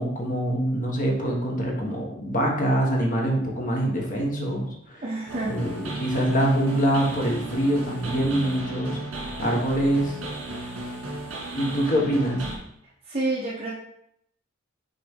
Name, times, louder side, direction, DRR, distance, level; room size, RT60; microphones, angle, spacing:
voice 1, 0.0-5.0 5.5-9.0 9.4-10.2 11.5-12.4, right 1 dB, 40° left, -1 dB, 1.3 m, -24 dB
voice 2, 5.0-5.6 13.0-13.7, right 2 dB, 30° right, -6 dB, 1.0 m, -28 dB
sound 1, 5.3-12.6, right 1 dB, 75° right, 1.8 m, -34 dB
6.6 x 3.9 x 3.6 m, 0.73 s
head